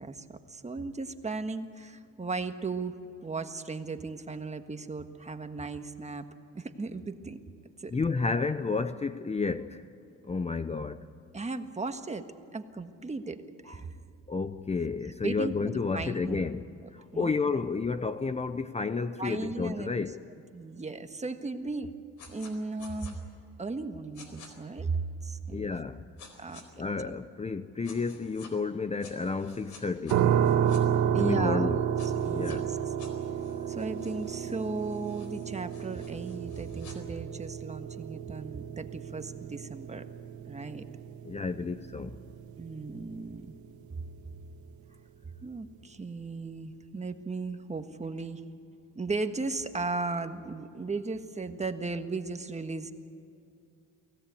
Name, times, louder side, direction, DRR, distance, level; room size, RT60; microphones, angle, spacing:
voice 1, 0.0-3.0 3.2-6.3 6.5-7.4 7.8-8.0 11.3-12.3 12.5-14.0 15.2-16.5 17.1-17.3 19.2-19.9 20.5-21.9 22.3-23.2 23.6-25.6 26.4-26.6 31.1-31.9 32.2-32.8 33.7-40.0 40.4-40.8 42.6-43.5 45.4-48.4 48.9-52.9, right 3 dB, 20° right, 1.5 m, -36 dB
voice 2, 7.9-9.8 10.2-11.0 13.7-13.8 14.3-20.2 25.5-26.0 26.8-30.2 31.2-31.8 32.3-32.6 41.2-42.2, left 4 dB, 20° left, 0.7 m, -31 dB
sound 1, 22.2-22.5 22.8-23.1 24.1-24.5 26.2-26.6 27.8-28.5 29.0-30.8 32.0-32.6 33.0-37.0, left 5 dB, 75° left, 4.3 m, -52 dB
sound 2, 30.1-43.0, right 9 dB, 75° right, 1.3 m, -31 dB
24.0 x 17.0 x 8.4 m
cardioid pair, 90°, 30 cm